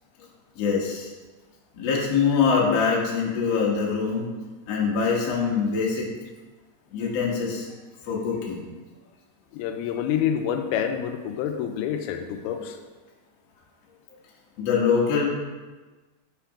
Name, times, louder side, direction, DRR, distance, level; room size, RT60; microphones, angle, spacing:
voice 1, 0.6-1.1 1.8-4.3 4.7-6.1 6.9-7.7 8.1-8.6 14.6-15.3, left 5 dB, 55° left, -3 dB, 2.0 m, -23 dB
voice 2, 9.5-12.8, left 9 dB, 90° left, 6 dB, 2.5 m, -27 dB
5.8 x 5.7 x 4.9 m, 1.3 s
omnidirectional pair, 4.4 m